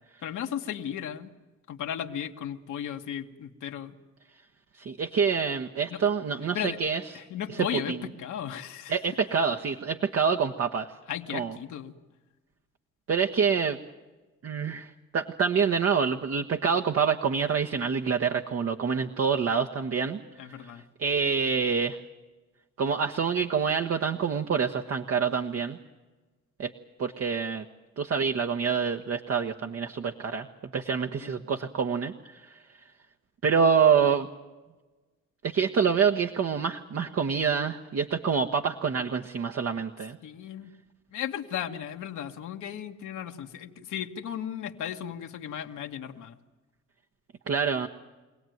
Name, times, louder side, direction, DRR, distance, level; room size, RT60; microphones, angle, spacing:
voice 1, 0.2-1.3 1.7-3.9 5.9-6.0 6.5-6.8 7.1-9.0 11.1-11.9 20.4-20.8 31.2-31.3 40.2-40.7 41.1-46.3, left 9 dB, 80° left, 4 dB, 1.6 m, -35 dB
voice 2, 4.8-7.0 7.5-8.0 8.9-10.9 11.3-11.6 13.1-13.8 14.4-20.2 20.6-20.7 21.0-22.0 22.8-25.8 26.6-26.7 27.0-27.6 28.0-30.5 30.7-32.5 33.4-34.3 35.4-40.2 47.5-47.9, right 6 dB, 50° right, 4 dB, 1.2 m, -26 dB
25.0 x 17.5 x 9.3 m, 1.2 s
cardioid pair, 90°, 30 cm